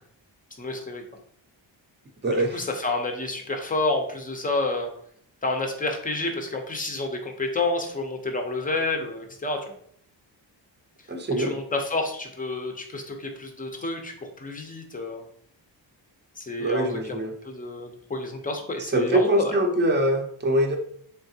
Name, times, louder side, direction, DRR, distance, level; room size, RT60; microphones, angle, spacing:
voice 1, 0.6-1.0 2.3-4.9 5.4-9.6 11.4-15.2 16.4-19.5, left 2 dB, 20° left, 3 dB, 0.6 m, -29 dB
voice 2, 2.2-2.6 11.1-11.5 16.6-17.3 18.8-20.8, right 1 dB, 25° right, 4 dB, 0.6 m, -23 dB
3.8 x 3.4 x 2.7 m, 0.64 s
wide cardioid pair, 135°, 46 cm